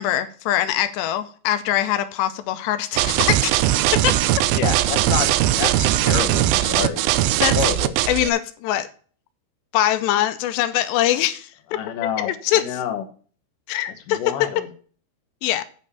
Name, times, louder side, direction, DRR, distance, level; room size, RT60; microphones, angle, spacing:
voice 1, 0.0-3.6 3.9-4.2 7.4-7.6 8.1-8.9 9.7-11.5 12.2-12.8 13.7-14.2 15.4-15.6, left 12 dB, 85° left, 2.8 m, -22 dB
sound 1, 3.0-8.3, right 14 dB, 85° right, 2.1 m, -19 dB
voice 2, 4.5-5.3 5.6-7.9 11.7-13.0 14.1-14.7, left 9 dB, 65° left, 2.3 m, -28 dB
8.8 x 5.3 x 6.8 m
omnidirectional pair, 4.9 m